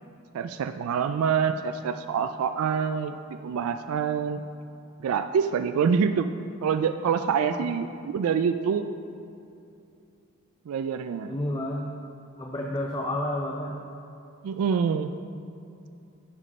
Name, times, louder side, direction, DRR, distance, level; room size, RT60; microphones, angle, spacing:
voice 1, 0.3-4.4 5.0-6.3 6.6-8.9 10.7-11.4 14.4-15.1, right 6 dB, 85° right, 9 dB, 0.3 m, -26 dB
voice 2, 11.3-11.8 12.4-13.8, left 1 dB, 20° left, -1 dB, 0.5 m, -30 dB
9.7 x 5.1 x 5.4 m, 2.7 s
head